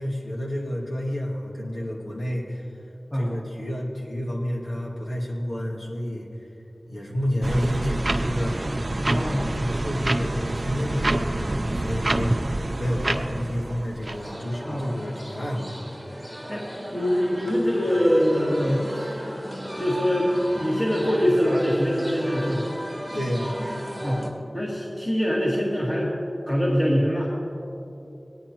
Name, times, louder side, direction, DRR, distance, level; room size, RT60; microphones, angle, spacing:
voice 1, 0.0-2.7 3.1-6.5 6.9-8.6 9.1-12.5 12.8-15.9 23.1-23.5, equal, 80° left, -4 dB, 2.0 m, -30 dB
sound 1, 7.4-14.2, right 1 dB, 50° right, 0.5 m, -27 dB
voice 2, 9.1-9.4 14.6-14.9 16.5-19.3 19.8-20.3 20.6-22.7 24.0-24.3 24.5-26.1 26.5-27.3, equal, 25° left, -4 dB, 1.8 m, -24 dB
sound 2, 14.0-24.3, equal, 5° left, 1.7 m, -35 dB
18.0 x 10.0 x 3.0 m, 2.8 s
wide cardioid pair, 40°, 0 cm